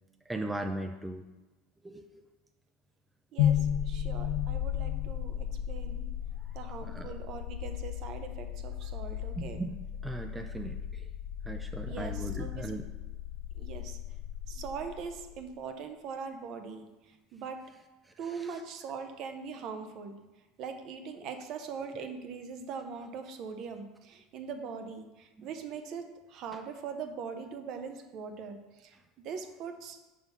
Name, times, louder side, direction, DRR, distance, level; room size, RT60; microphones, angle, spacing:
voice 1, 0.3-1.2 1.8-2.0 6.8-7.1 9.4-9.7 10.0-11.1 11.5-12.8 18.3-18.5 25.4-25.5, right 2 dB, 10° right, 5 dB, 0.4 m, -38 dB
voice 2, 3.3-6.1 6.5-9.6 11.9-12.8 13.5-14.0 14.5-17.6 18.2-20.2 20.6-30.0, right 6 dB, 50° right, 6 dB, 0.8 m, -41 dB
sound 1, 3.4-15.4, left 10 dB, 85° left, 0.4 m, -34 dB
5.8 x 3.7 x 5.6 m, 1.1 s
supercardioid pair, 120°, 0 cm